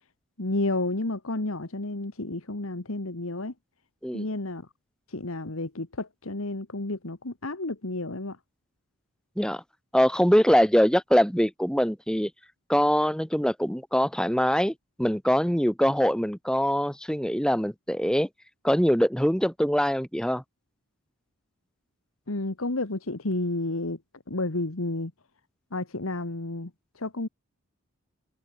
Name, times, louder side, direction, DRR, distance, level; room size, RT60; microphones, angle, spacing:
voice 1, 0.4-3.5 4.1-4.6 5.1-8.4 22.3-24.0 24.3-25.1 25.7-26.7 27.0-27.3, left 2 dB, 70° left, 1.7 m, -31 dB
voice 2, 9.9-12.3 12.7-14.7 15.0-18.3 18.6-20.4, equal, 5° left, 1.6 m, -23 dB
head